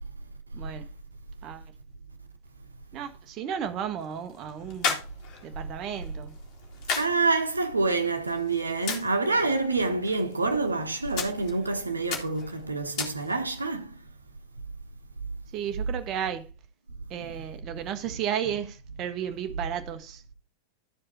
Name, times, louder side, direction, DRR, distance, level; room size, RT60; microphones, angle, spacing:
voice 1, 0.5-0.9 1.4-1.7 2.9-5.0 5.4-6.4 15.5-16.5 17.1-20.2, right 9 dB, 35° right, 1.1 m, -33 dB
sound 1, 3.6-13.6, left 5 dB, 40° left, 2.5 m, -38 dB
voice 2, 6.9-14.0 17.2-17.3, right 3 dB, 80° right, 1.2 m, -27 dB
13.0 x 4.9 x 4.3 m
figure-of-eight pair, 90°, 0 cm